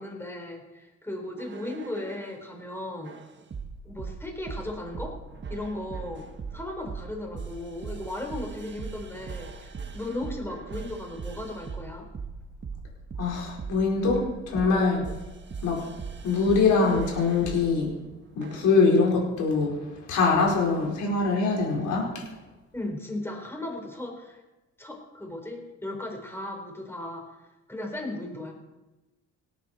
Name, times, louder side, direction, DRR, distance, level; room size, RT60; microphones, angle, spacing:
voice 1, 0.0-3.1 3.8-5.2 5.5-6.3 6.5-12.1 22.7-24.4 24.8-27.2 27.7-28.5, left 1 dB, 10° left, 1 dB, 4.1 m, -36 dB
sound 1, 1.4-2.4 3.0-17.7 18.4-18.8, right 5 dB, 40° right, 1.4 m, -39 dB
voice 2, 13.2-15.1 15.6-15.8 16.2-17.9 18.3-22.1, left 4 dB, 80° left, -2 dB, 4.7 m, -23 dB
18.0 x 9.7 x 4.4 m, 1.1 s
cardioid pair, 90°, 30 cm